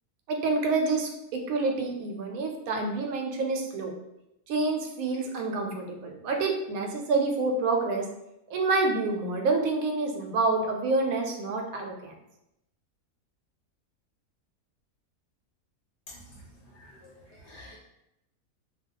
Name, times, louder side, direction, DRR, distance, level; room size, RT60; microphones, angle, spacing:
voice 1, 0.3-3.9 4.5-8.1 8.5-12.1, right 3 dB, 75° right, 3 dB, 1.0 m, -28 dB
voice 2, 16.1-16.4 16.7-17.8, left 1 dB, 55° left, -5 dB, 0.7 m, -49 dB
2.4 x 2.3 x 3.6 m, 0.86 s
omnidirectional pair, 1.5 m